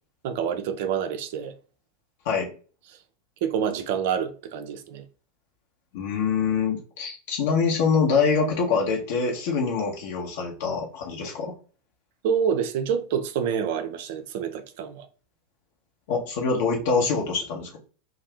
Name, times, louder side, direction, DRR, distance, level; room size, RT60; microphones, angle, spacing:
voice 1, 0.2-1.5 3.4-5.0 12.2-15.1, right 7 dB, 50° right, 0.4 m, -27 dB
voice 2, 5.9-11.6 16.1-17.8, left 5 dB, 50° left, 0.9 m, -25 dB
2.7 x 2.4 x 3.2 m
figure-of-eight pair, 90°, 0 cm